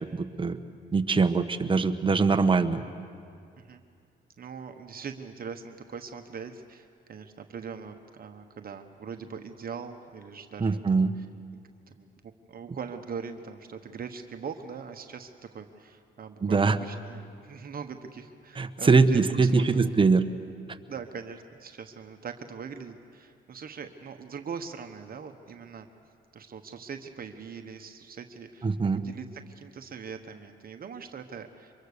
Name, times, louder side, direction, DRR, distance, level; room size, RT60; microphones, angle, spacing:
voice 1, 0.1-0.6 0.9-2.8 10.6-11.1 16.4-16.8 18.6-20.2 28.6-29.0, right 4 dB, 25° right, 8 dB, 1.1 m, -22 dB
voice 2, 4.4-11.0 12.0-12.1 12.5-15.3 15.5-19.2 19.5-20.0 20.9-25.9 26.3-31.7, right 6 dB, 50° right, 6 dB, 1.2 m, -41 dB
24.5 x 22.5 x 6.8 m, 2.3 s
cardioid pair, 90°, 20 cm